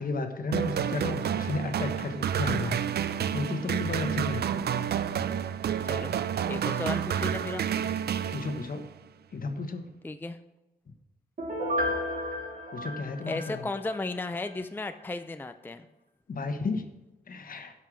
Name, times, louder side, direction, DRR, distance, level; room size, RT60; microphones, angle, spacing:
voice 1, 0.0-2.8 3.3-4.6 8.3-8.8 9.3-9.9 12.7-13.7 16.3-16.9 17.3-17.7, left 3 dB, 60° left, 7 dB, 1.3 m, -33 dB
sound 1, 0.5-8.9, right 8 dB, 80° right, 0.5 m, -30 dB
voice 2, 5.8-6.2 6.5-7.7 10.0-10.4 13.3-15.9, left 2 dB, 10° left, 9 dB, 0.5 m, -34 dB
Piano, 11.4-14.1 14.5-14.6, equal, 55° right, 3.1 m, -32 dB
10.5 x 5.7 x 6.2 m, 1.0 s
cardioid pair, 85°, 16 cm